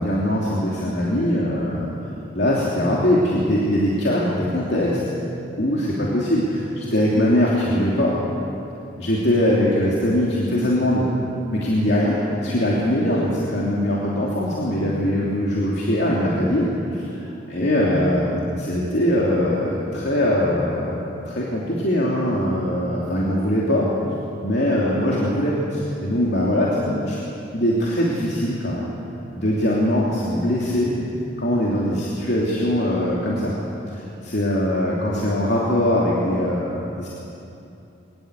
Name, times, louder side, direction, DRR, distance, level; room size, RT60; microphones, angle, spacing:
voice 1, 0.0-1.9 2.3-5.0 5.6-8.2 9.0-11.0 11.5-21.0 21.2-23.9 24.4-27.2 27.5-28.9 29.3-31.0 31.4-33.6 33.9-37.1, left 1 dB, 60° left, -5 dB, 3.1 m, -21 dB
22.5 x 19.5 x 8.3 m, 2.7 s
head